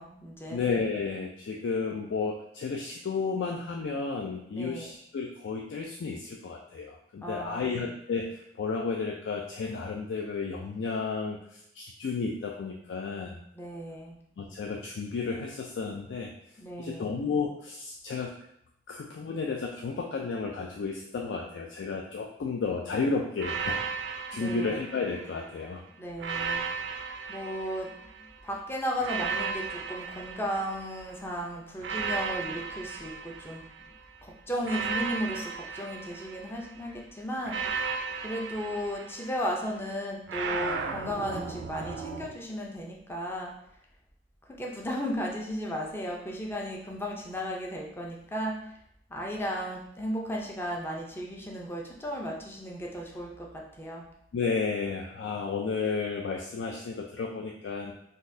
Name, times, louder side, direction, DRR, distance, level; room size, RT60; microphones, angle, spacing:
voice 1, 0.0-0.6 4.6-4.9 7.2-7.8 13.5-14.1 16.6-17.1 24.3-24.8 26.0-26.6 27.3-27.9 28.2-33.7 34.2-37.6 38.2-43.5 44.6-48.6 49.1-54.0, equal, 15° left, -1 dB, 0.5 m, -35 dB
voice 2, 0.5-11.4 11.8-13.4 14.4-16.3 16.8-18.3 18.9-23.8 24.3-25.8 54.3-57.9, left 4 dB, 80° left, 0 dB, 0.4 m, -32 dB
sound 1, 23.4-25.5 26.2-28.3 29.0-31.2 31.8-34.0 34.6-36.8 37.5-39.6 40.3-42.3, right 5 dB, 75° right, 0.3 m, -35 dB
3.8 x 2.6 x 2.6 m, 0.73 s
head